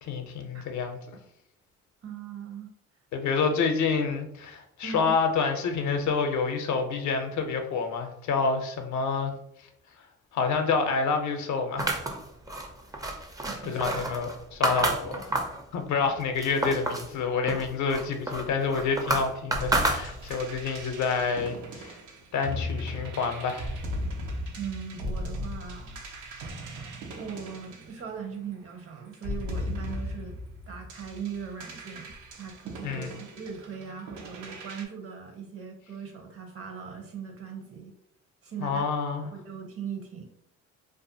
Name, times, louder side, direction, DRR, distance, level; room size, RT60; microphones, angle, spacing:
voice 1, 0.0-1.0 3.1-9.3 10.3-12.0 13.6-15.3 15.7-22.0 22.3-23.7 32.8-33.1 38.6-39.3, left 5 dB, 70° left, 5 dB, 0.6 m, -28 dB
voice 2, 2.0-2.7 4.8-5.2 13.4-13.9 24.5-26.0 27.2-30.4 30.7-37.9 38.4-38.8 39.3-40.2, right 6 dB, 50° right, 3 dB, 0.7 m, -39 dB
sound 1, 11.8-15.6 16.1-17.1 17.5-20.5, right 1 dB, 10° right, 0.4 m, -30 dB
sound 2, 19.5-28.5 29.1-34.8, left 1 dB, 85° right, 0.6 m, -37 dB
2.5 x 2.3 x 2.6 m, 0.75 s
cardioid pair, 90°, 30 cm